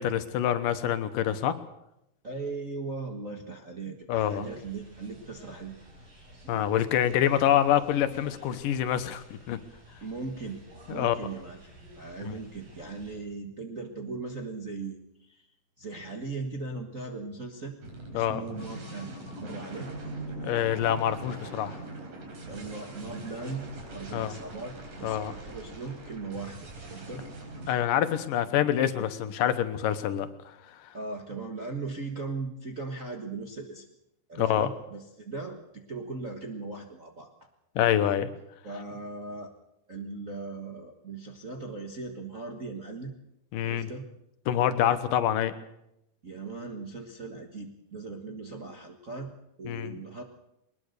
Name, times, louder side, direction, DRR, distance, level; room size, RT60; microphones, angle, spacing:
voice 1, 0.0-1.5 4.1-4.5 6.5-9.6 10.9-11.2 12.2-12.4 18.1-18.4 20.4-21.8 24.1-24.3 25.0-25.3 27.7-30.6 34.4-34.7 37.8-38.3 43.5-43.9 44.5-45.5 49.6-50.0, left 10 dB, 80° left, 11 dB, 2.8 m, -26 dB
voice 2, 2.2-5.8 10.0-10.6 10.9-11.7 11.9-15.5 15.8-17.8 18.1-19.1 19.4-19.9 22.5-26.6 26.9-27.2 28.6-28.7 30.9-33.9 34.3-37.3 38.6-39.5 39.9-43.1 43.6-44.1 46.2-49.3 49.6-50.2, right 3 dB, 40° right, 2 dB, 1.2 m, -38 dB
sound 1, 4.1-13.2, right 1 dB, 85° right, 9.4 m, -52 dB
sound 2, 17.8-27.7, right 2 dB, 65° right, 5.6 m, -42 dB
21.5 x 20.0 x 6.7 m, 0.84 s
omnidirectional pair, 3.9 m